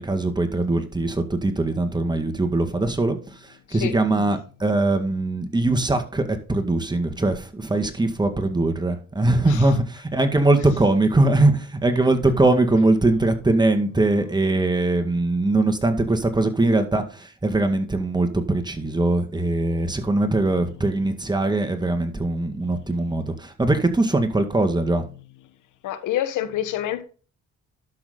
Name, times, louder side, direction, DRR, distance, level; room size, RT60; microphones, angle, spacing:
voice 1, 0.0-3.2 3.4-25.0, right 2 dB, 15° right, 1.9 m, -21 dB
voice 2, 3.7-4.3 9.4-9.6 22.5-22.8 25.8-27.0, left 11 dB, 85° left, 1.3 m, -28 dB
12.0 x 6.3 x 3.9 m
cardioid pair, 90°, 30 cm